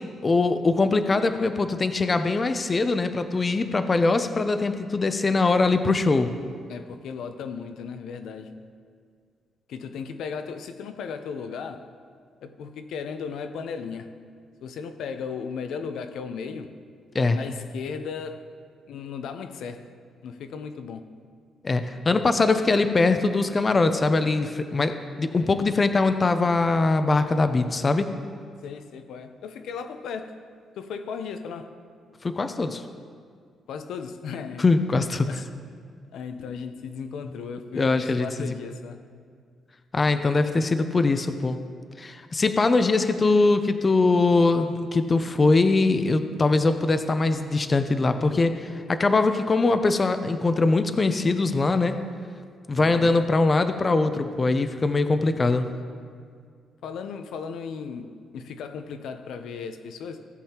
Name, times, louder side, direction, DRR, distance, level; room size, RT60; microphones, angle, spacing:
voice 1, 0.2-6.3 17.1-17.4 21.6-28.1 32.2-32.8 34.6-35.3 37.7-38.3 39.9-41.6 42.0-52.0 52.7-55.7, left 3 dB, 25° left, 0.4 m, -22 dB
voice 2, 6.7-8.5 9.7-11.9 12.4-14.2 14.6-16.7 17.3-18.5 18.9-19.9 20.2-21.1 25.4-25.6 28.6-30.4 30.8-31.7 33.7-34.6 35.2-35.5 36.1-39.0 52.8-53.1 56.8-60.3, left 6 dB, 80° left, 0.6 m, -36 dB
17.0 x 7.4 x 2.9 m
cardioid pair, 135°, 0 cm